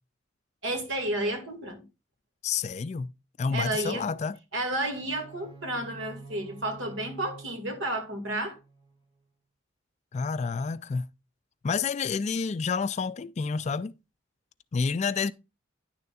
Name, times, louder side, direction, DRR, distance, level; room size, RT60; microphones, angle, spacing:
voice 1, 0.6-1.8 3.5-4.1 4.5-8.6, right 1 dB, 75° right, 2.0 m, -31 dB
voice 2, 2.4-3.1 3.4-4.4 10.1-11.1 11.6-14.0 14.7-15.3, left 5 dB, 35° left, 0.3 m, -29 dB
sound 1, 5.0-9.0, right 4 dB, 25° right, 2.1 m, -48 dB
10.0 x 6.7 x 2.4 m
head